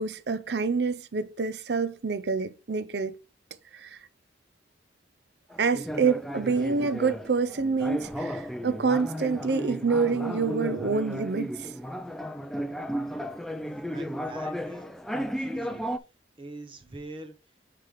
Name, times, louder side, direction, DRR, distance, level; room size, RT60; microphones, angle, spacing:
voice 1, 0.0-3.2 3.7-4.0 5.6-11.5, right 4 dB, 65° right, 0.6 m, -27 dB
sound 1, 5.5-16.0, equal, ahead, 0.4 m, -34 dB
voice 2, 13.9-15.9 16.4-17.3, right 2 dB, 30° right, 0.7 m, -43 dB
9.2 x 3.4 x 3.5 m
head